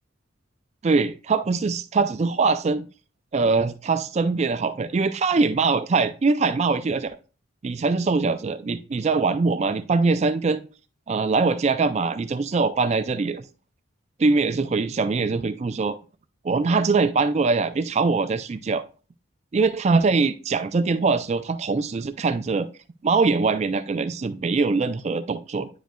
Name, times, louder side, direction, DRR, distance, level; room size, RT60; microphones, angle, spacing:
voice 1, 0.8-2.8 3.3-7.2 7.6-10.6 11.1-13.4 14.2-16.0 16.4-18.8 19.5-22.7 23.0-25.7, right 4 dB, 30° right, 0.3 m, -22 dB
10.0 x 5.1 x 2.3 m
head